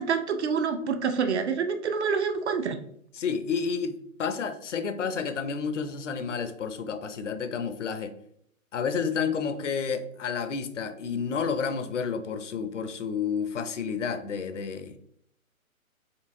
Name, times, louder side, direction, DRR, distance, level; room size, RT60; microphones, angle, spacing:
voice 1, 0.0-2.8, right 6 dB, 50° right, 7 dB, 0.5 m, -27 dB
voice 2, 3.2-8.1 8.7-15.0, left 6 dB, 60° left, 10 dB, 0.5 m, -30 dB
4.5 x 2.7 x 2.6 m, 0.68 s
figure-of-eight pair, 130°, 43 cm